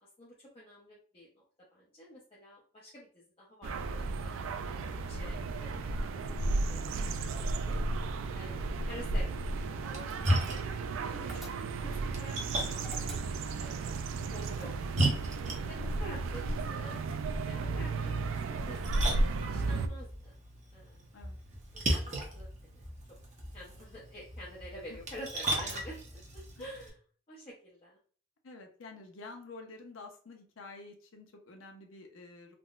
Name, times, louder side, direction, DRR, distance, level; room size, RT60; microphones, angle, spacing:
voice 1, 0.2-1.4 1.7-4.8 5.1-6.2 6.7-7.8 8.3-10.6 11.0-15.1 15.7-17.0 17.4-19.1 19.5-20.4 20.7-21.1 21.7-22.8 23.5-26.0 26.3-26.9 27.3-28.0, equal, 30° left, -7 dB, 0.7 m, -49 dB
sound 1, 3.6-19.9, right 3 dB, 80° right, 0.3 m, -34 dB
voice 2, 8.3-8.7 10.4-10.7 21.1-21.4 25.5-25.8 26.6-26.7 28.4-32.5, left 3 dB, 85° left, 3 dB, 0.7 m, -50 dB
Splash splatter, 9.8-26.9, right 1 dB, 35° right, 0.8 m, -37 dB
sound 2, 11.3-12.0 12.8-13.7 14.6-15.5, equal, ahead, 0.8 m, -51 dB
3.7 x 2.1 x 2.4 m, 0.44 s
head